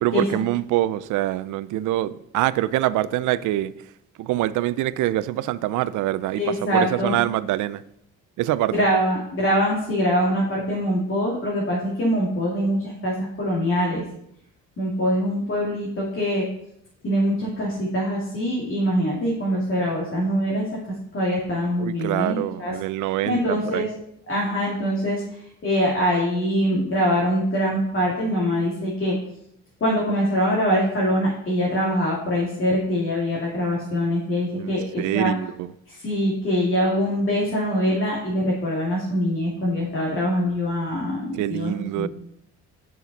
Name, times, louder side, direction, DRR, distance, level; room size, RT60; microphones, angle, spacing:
voice 1, 0.0-3.7 4.2-7.8 8.4-8.7 21.8-23.9 34.5-35.7 41.3-42.1, right 14 dB, 80° right, 0.4 m, -25 dB
voice 2, 6.3-7.2 8.7-14.0 14.8-16.5 17.0-20.7 21.1-22.7 23.0-23.9 24.3-29.2 29.8-35.3 35.9-42.1, equal, 45° left, 2.3 m, -23 dB
7.1 x 5.9 x 4.0 m
cardioid pair, 90°, 30 cm